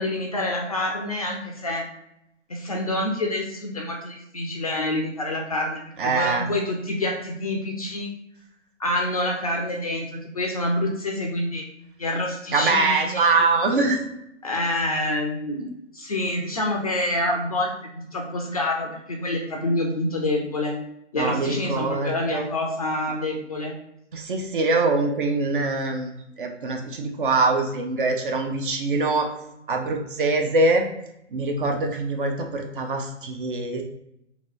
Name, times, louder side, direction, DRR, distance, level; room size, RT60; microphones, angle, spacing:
voice 1, 0.0-1.8 2.5-8.1 8.8-11.6 12.0-13.5 14.4-15.7 15.9-20.8 21.1-23.7, left 1 dB, 30° left, 1 dB, 0.4 m, -27 dB
voice 2, 6.0-6.4 12.5-14.0 21.1-22.5 24.1-26.1 26.4-29.3 29.7-30.9 31.3-33.8, right 3 dB, 45° right, 4 dB, 0.5 m, -23 dB
2.9 x 2.7 x 3.0 m, 0.82 s
figure-of-eight pair, 130°, 37 cm